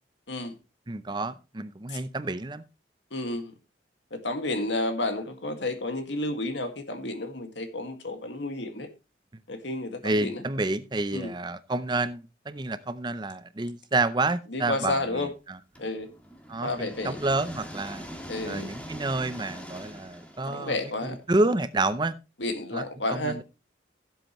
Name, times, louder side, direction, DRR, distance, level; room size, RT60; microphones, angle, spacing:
voice 1, 0.9-2.6 10.0-15.6 16.5-18.1 18.4-22.2 22.7-23.4, right 2 dB, 25° right, 0.6 m, -29 dB
voice 2, 3.1-3.5 4.1-8.9 9.5-10.4 11.1-11.3 14.5-15.3 15.8-16.1 16.6-17.2 18.3-18.7 20.5-21.2 22.4-23.4, left 2 dB, 80° left, 1.9 m, -31 dB
sound 1, 15.8-21.6, equal, 5° left, 1.7 m, -43 dB
16.0 x 7.8 x 3.1 m
head